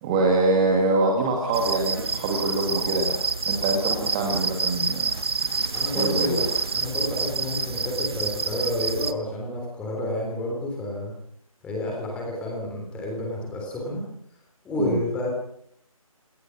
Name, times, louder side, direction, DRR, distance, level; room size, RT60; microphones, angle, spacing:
voice 1, 0.0-5.1 5.9-6.4 14.8-15.0, right 2 dB, 15° right, 1 dB, 2.0 m, -24 dB
sound 1, 1.5-9.1, right 4 dB, 45° right, 1.3 m, -28 dB
voice 2, 5.7-11.1 11.6-14.1 14.6-15.3, left 1 dB, 5° left, -1 dB, 3.6 m, -30 dB
28.0 x 18.0 x 6.1 m, 0.71 s
figure-of-eight pair, 160°, 19 cm